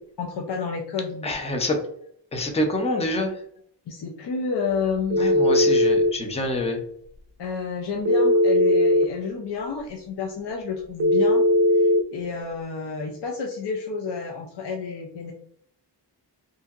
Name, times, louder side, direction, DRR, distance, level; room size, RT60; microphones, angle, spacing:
voice 1, 0.2-1.5 3.9-5.4 7.4-11.4 11.7-15.3, left 5 dB, 70° left, 1 dB, 0.5 m, -30 dB
voice 2, 1.2-1.8 2.3-3.3 5.2-6.8, left 1 dB, 15° left, 3 dB, 0.4 m, -26 dB
Telephone, 5.1-6.1 8.0-9.1 11.0-12.0, left 1 dB, 35° right, 0.5 m, -18 dB
2.7 x 2.7 x 2.3 m, 0.68 s
wide cardioid pair, 135°, 43 cm